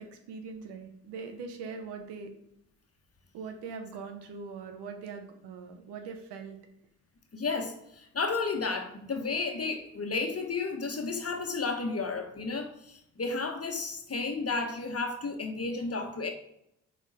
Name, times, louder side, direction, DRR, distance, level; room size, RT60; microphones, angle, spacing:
voice 1, 0.0-2.3 3.3-6.6, right 5 dB, 80° right, 6 dB, 1.0 m, -41 dB
voice 2, 7.3-16.3, left 4 dB, 35° left, 4 dB, 1.3 m, -32 dB
5.8 x 4.2 x 4.2 m, 0.76 s
hypercardioid pair, 45°, 40 cm